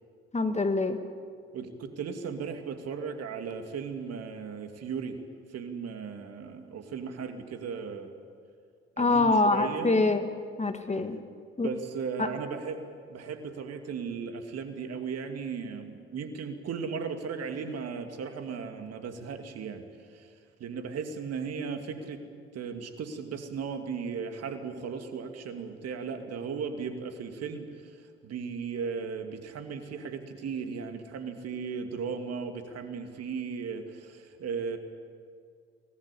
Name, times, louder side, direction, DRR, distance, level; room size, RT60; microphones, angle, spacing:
voice 1, 0.3-1.0 9.0-10.3 10.6-11.2 11.6-11.7 12.2-12.3, left 3 dB, 20° left, 8 dB, 2.1 m, -25 dB
voice 2, 1.5-5.2 5.5-8.1 9.0-10.0 11.6-12.8 13.1-19.8 20.1-20.3 20.6-22.2 22.5-27.9 28.2-34.8, right 5 dB, 55° right, 7 dB, 2.6 m, -36 dB
23.0 x 20.0 x 8.6 m, 2.2 s
hypercardioid pair, 50°, 31 cm